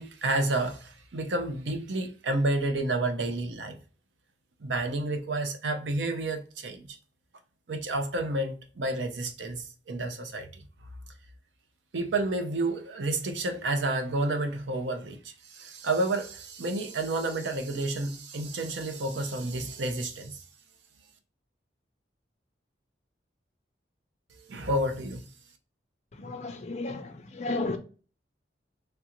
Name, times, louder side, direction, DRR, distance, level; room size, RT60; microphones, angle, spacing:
voice 1, 0.0-3.8 4.6-7.0 7.7-10.6 11.9-20.4 24.5-25.3, right 2 dB, 90° right, 0.6 m, -30 dB
voice 2, 26.1-27.8, left 2 dB, 40° left, 0.5 m, -33 dB
3.3 x 2.4 x 2.9 m
head